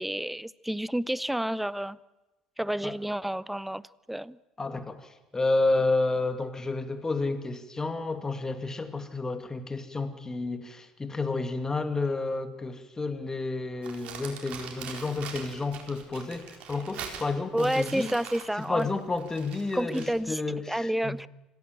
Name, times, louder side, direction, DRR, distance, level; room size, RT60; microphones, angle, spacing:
voice 1, 0.0-2.0 2.6-3.8 4.1-4.4 17.5-18.9 19.7-20.4 20.7-21.3, right 1 dB, 5° right, 21 dB, 0.7 m, -29 dB
voice 2, 4.6-18.1 18.7-21.3, left 3 dB, 20° left, 9 dB, 2.5 m, -30 dB
Crumpling crinkling, 13.8-20.2, right 7 dB, 50° right, 4.0 m, -43 dB
26.0 x 15.5 x 7.5 m, 1.1 s
figure-of-eight pair, 60°, 3 cm